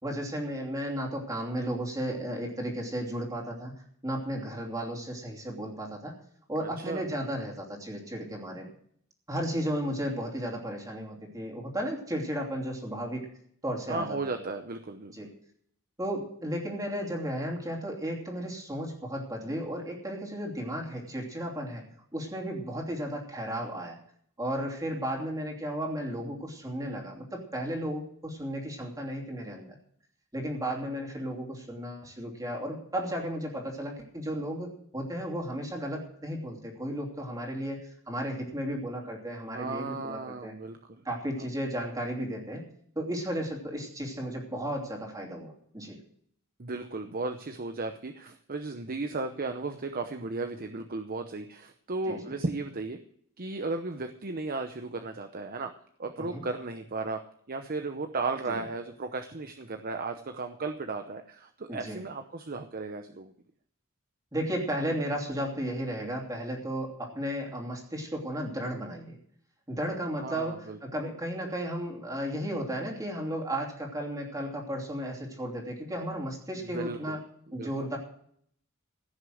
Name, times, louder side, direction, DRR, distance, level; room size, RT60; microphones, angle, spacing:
voice 1, 0.0-3.7 4.0-6.1 6.5-8.7 9.3-13.3 13.6-14.3 15.1-15.3 16.0-21.8 22.1-24.0 24.4-29.7 30.3-34.7 34.9-40.5 41.0-42.6 42.9-46.0 52.1-52.3 56.2-56.4 58.5-58.6 61.7-62.0 64.3-69.2 69.7-77.2 77.5-78.0, equal, 15° right, -1 dB, 2.9 m, -34 dB
voice 2, 6.6-7.1 13.9-15.1 39.5-40.8 41.4-41.5 46.6-53.0 53.4-55.7 56.0-57.2 57.5-63.3 70.2-70.8 76.6-77.2 77.5-77.9, right 3 dB, 45° right, 6 dB, 0.8 m, -35 dB
16.0 x 6.8 x 7.7 m, 0.64 s
head